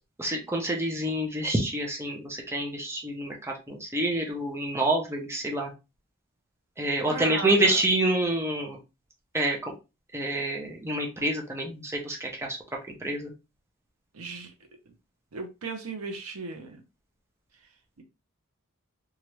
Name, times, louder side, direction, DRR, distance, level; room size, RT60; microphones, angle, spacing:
voice 1, 0.2-5.7 6.8-8.8 9.3-9.7 10.1-12.6 13.0-13.3, right 1 dB, 10° right, 0.6 m, -27 dB
voice 2, 7.1-7.8 14.1-14.5 15.3-16.8, right 4 dB, 70° right, 0.7 m, -36 dB
3.1 x 2.4 x 2.9 m
head